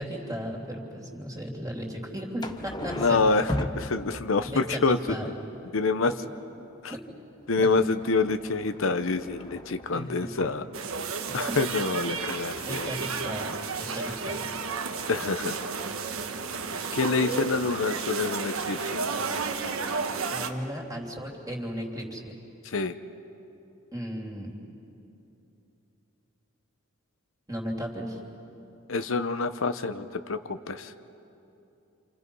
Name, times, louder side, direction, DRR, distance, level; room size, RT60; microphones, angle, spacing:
voice 1, 0.0-3.5 4.5-5.3 6.9-7.0 7.5-7.7 9.9-10.5 12.6-14.3 20.3-22.3 23.9-24.5 27.5-28.2, equal, 15° right, -1 dB, 3.0 m, -35 dB
sound 1, 2.4-4.5 7.4-10.6 12.5-12.6 12.8-12.9, left 1 dB, 20° left, 0.9 m, -37 dB
voice 2, 2.9-5.2 5.7-6.1 6.8-6.9 7.5-10.6 11.3-12.9 15.1-15.5 16.9-19.0 22.6-22.9 28.9-30.9, left 3 dB, 70° left, 10 dB, 0.8 m, -27 dB
sound 2, 10.7-20.5, right 4 dB, 80° right, 1.4 m, -32 dB
29.0 x 28.0 x 5.4 m, 2.9 s
head